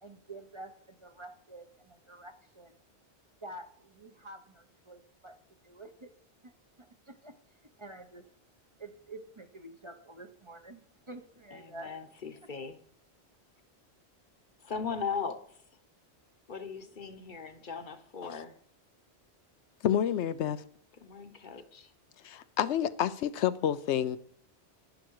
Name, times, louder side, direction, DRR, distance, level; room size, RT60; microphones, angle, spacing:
voice 1, 0.0-2.8 3.4-6.1 6.4-6.5 6.8-7.3 7.8-8.2 8.8-11.9, right 2 dB, 30° right, 6 dB, 1.0 m, -48 dB
voice 2, 11.5-12.8 14.6-15.6 16.5-18.6 21.0-21.9, left 5 dB, 50° left, 9 dB, 1.1 m, -38 dB
voice 3, 19.8-20.6 22.2-24.2, left 10 dB, 85° left, 14 dB, 0.9 m, -29 dB
11.0 x 10.5 x 4.7 m, 0.62 s
omnidirectional pair, 1.1 m